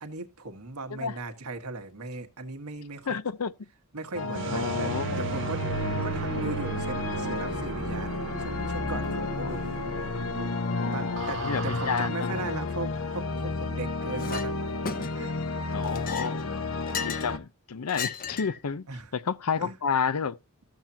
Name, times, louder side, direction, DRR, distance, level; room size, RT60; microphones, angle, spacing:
voice 1, 0.0-3.2 3.9-4.9 5.2-5.7 6.0-9.8 10.9-14.7 14.9-15.4 15.9-16.1 18.9-19.1 19.6-19.8, right 2 dB, 85° right, 1.5 m, -38 dB
voice 2, 3.1-3.7 4.5-5.1 5.9-6.0 9.4-9.6 10.7-12.3 15.7-16.4 17.0-18.9 19.1-20.4, left 6 dB, 90° left, 0.6 m, -30 dB
sound 1, 4.1-17.4, left 3 dB, 65° left, 1.0 m, -32 dB
sound 2, 4.3-12.1, right 5 dB, 55° right, 0.5 m, -37 dB
Chink clink, 14.2-14.5 14.8-15.4 15.8-17.3 17.9-18.6, left 6 dB, 40° left, 0.8 m, -35 dB
13.0 x 7.3 x 2.8 m
head